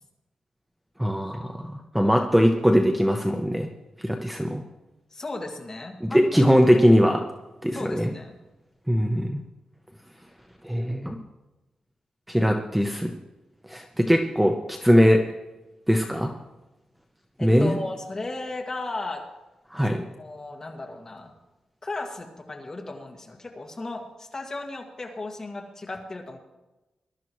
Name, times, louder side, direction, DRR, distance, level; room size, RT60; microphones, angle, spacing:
voice 1, 1.0-3.7 4.0-4.6 6.0-7.2 7.6-8.1 8.9-9.4 10.6-11.2 12.3-13.1 13.7-15.2 15.9-16.3 17.4-17.8 19.7-20.0, equal, 5° right, 3 dB, 0.8 m, -21 dB
voice 2, 5.1-6.5 7.7-8.4 17.4-19.3 19.9-21.3 21.8-26.4, left 2 dB, 30° left, 1 dB, 2.0 m, -35 dB
21.5 x 12.0 x 3.1 m, 1.1 s
wide cardioid pair, 140°, 2 cm